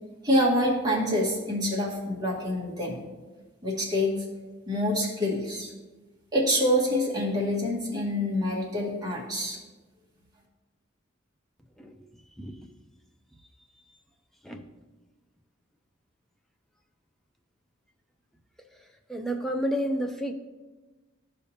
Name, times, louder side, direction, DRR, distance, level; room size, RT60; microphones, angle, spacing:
voice 1, 0.2-3.0 3.6-4.2 4.7-5.7 6.3-9.6, left 1 dB, 20° right, -5 dB, 1.7 m, -26 dB
voice 2, 19.1-20.3, equal, ahead, 3 dB, 0.5 m, -30 dB
13.5 x 5.1 x 2.8 m, 1.2 s
head